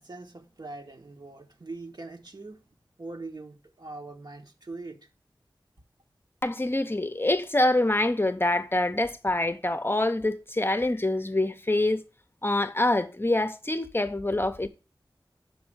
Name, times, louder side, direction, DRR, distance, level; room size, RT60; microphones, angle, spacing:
voice 1, 0.0-2.6 3.0-5.1, right 3 dB, 60° right, 1.5 m, -42 dB
voice 2, 6.4-12.0 12.4-14.7, left 1 dB, 30° left, 0.7 m, -25 dB
6.1 x 5.2 x 6.2 m
wide cardioid pair, 45°, 8 cm